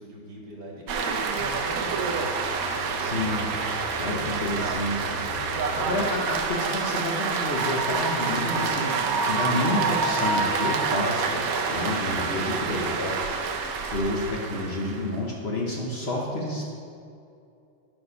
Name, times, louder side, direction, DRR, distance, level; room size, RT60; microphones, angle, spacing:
voice 1, 0.0-2.2 2.5-2.6 3.9-4.5, right 1 dB, 50° right, -1 dB, 1.5 m, -40 dB
sound 1, 0.9-15.2, right 4 dB, 75° right, 0.8 m, -27 dB
sound 2, 1.4-6.4, left 5 dB, 80° left, 1.3 m, -43 dB
voice 2, 3.0-3.5 4.0-11.4 11.7-16.6, left 1 dB, 60° left, -2 dB, 0.6 m, -30 dB
9.2 x 4.4 x 5.4 m, 2.6 s
omnidirectional pair, 2.3 m